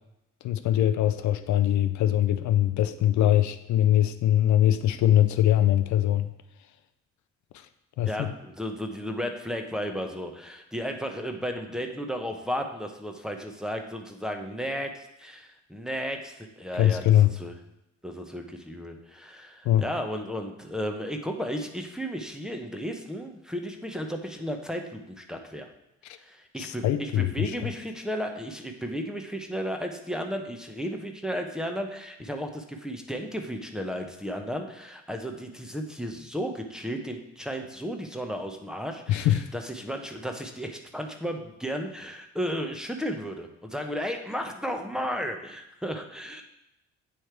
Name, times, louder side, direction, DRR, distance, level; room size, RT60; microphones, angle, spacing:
voice 1, 0.4-6.3 8.0-8.3 16.8-17.3 19.7-19.8 26.6-27.5 39.1-39.5, left 12 dB, 70° left, 10 dB, 0.4 m, -22 dB
voice 2, 8.0-17.5 18.0-25.7 26.2-46.4, equal, ahead, 3 dB, 0.7 m, -34 dB
8.2 x 3.2 x 4.5 m, 0.88 s
cardioid pair, 90°, 30 cm